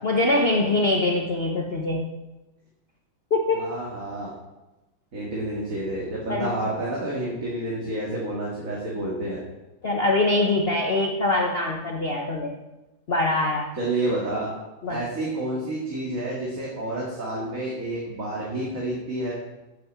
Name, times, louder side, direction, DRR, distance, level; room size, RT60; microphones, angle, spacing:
voice 1, 0.0-2.1 3.3-3.7 6.3-6.5 9.8-12.5 13.1-13.7 14.8-15.0, left 2 dB, 40° left, 0 dB, 1.0 m, -23 dB
voice 2, 3.5-4.3 5.1-9.4 13.8-14.5 14.9-19.4, right 1 dB, 40° right, -4 dB, 2.5 m, -29 dB
8.6 x 8.5 x 7.4 m, 1.0 s
omnidirectional pair, 2.2 m